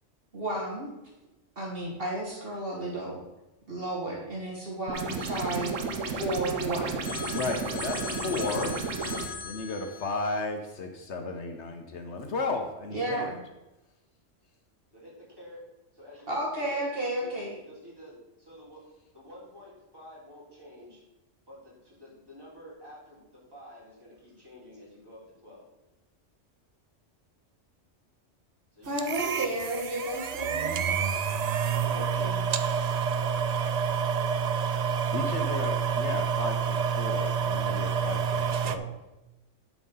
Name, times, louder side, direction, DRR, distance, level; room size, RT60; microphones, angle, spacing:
voice 1, 0.3-0.9 1.6-3.2 3.7-5.7 6.1-7.0 12.9-13.4 16.3-17.6 28.9-31.1 31.9-32.4, right 1 dB, 50° right, -2 dB, 2.1 m, -32 dB
sound 1, 4.9-9.3, right 4 dB, 85° right, 1.3 m, -33 dB
Telephone, 5.2-6.6 7.0-10.4, left 6 dB, 45° left, 0.8 m, -41 dB
voice 2, 7.3-8.7 9.4-13.3 35.1-39.0, left 3 dB, 65° left, 5 dB, 1.2 m, -34 dB
voice 3, 14.9-15.6 15.9-18.8 19.1-21.0 21.5-25.7 28.7-29.5 31.7-35.6, left 1 dB, 20° right, -7 dB, 4.0 m, -50 dB
sound 2, 29.0-38.8, right 7 dB, 70° right, 0.4 m, -28 dB
11.0 x 4.9 x 5.5 m, 0.99 s
omnidirectional pair, 1.3 m